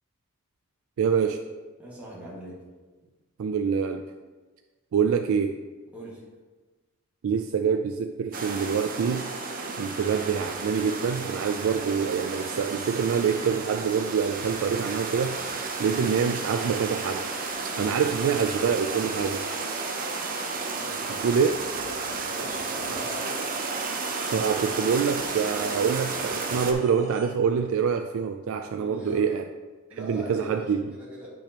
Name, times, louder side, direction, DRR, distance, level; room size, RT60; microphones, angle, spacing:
voice 1, 1.0-1.4 3.4-4.0 4.9-5.6 7.2-9.2 9.8-15.4 15.8-17.2 17.8-19.5 21.1-21.5 24.3-29.4 30.0-30.9, right 6 dB, 65° right, 6 dB, 0.3 m, -25 dB
voice 2, 1.8-2.6 5.9-6.2 20.7-21.0 22.2-23.5 28.8-29.3 29.9-31.3, equal, 5° right, -8 dB, 1.9 m, -41 dB
sound 1, 8.3-26.7, right 4 dB, 40° right, 0.7 m, -32 dB
sound 2, 9.1-27.3, right 1 dB, 20° right, 1.3 m, -47 dB
8.3 x 6.0 x 3.0 m, 1.3 s
head